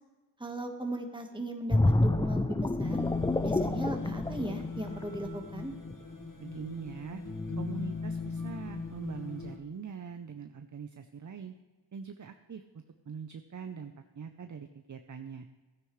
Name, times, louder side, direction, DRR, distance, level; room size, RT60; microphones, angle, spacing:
voice 1, 0.4-3.0 3.4-5.7, right 1 dB, 10° right, 3 dB, 1.4 m, -37 dB
sound 1, 1.7-5.3 5.7-5.9, left 2 dB, 10° left, 0.4 m, -28 dB
sound 2, 2.8-9.6, left 4 dB, 45° left, 1.6 m, -37 dB
voice 2, 6.4-7.2 7.6-11.5 11.9-15.5, right 6 dB, 45° right, 8 dB, 0.6 m, -43 dB
13.5 x 9.5 x 3.2 m, 1.4 s
wide cardioid pair, 50°, 43 cm